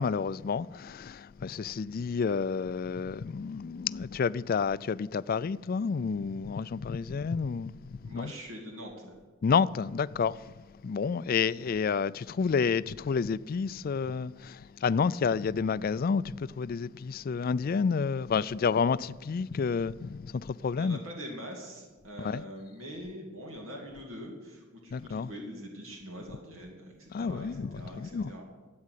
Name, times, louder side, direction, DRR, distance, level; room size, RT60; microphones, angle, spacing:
voice 1, 0.0-8.3 9.4-10.5 10.8-21.0 22.2-22.4 24.9-25.3 27.1-28.3, left 5 dB, 45° left, 0.3 m, -30 dB
voice 2, 8.0-9.1 20.8-27.5 27.7-28.4, equal, 90° right, 2.6 m, -43 dB
13.0 x 8.7 x 8.3 m
head